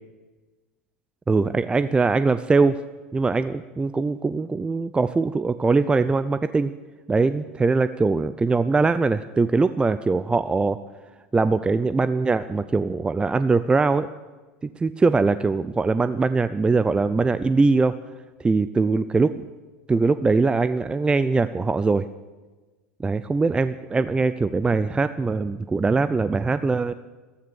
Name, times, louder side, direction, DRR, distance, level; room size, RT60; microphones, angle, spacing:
voice 1, 1.3-2.8 3.1-6.7 7.1-10.8 11.3-14.1 14.6-18.0 18.4-19.5 19.9-22.1 23.0-26.9, right 4 dB, 15° right, 13 dB, 0.5 m, -22 dB
14.5 x 14.0 x 6.9 m, 1.2 s
hypercardioid pair, 80°, 7 cm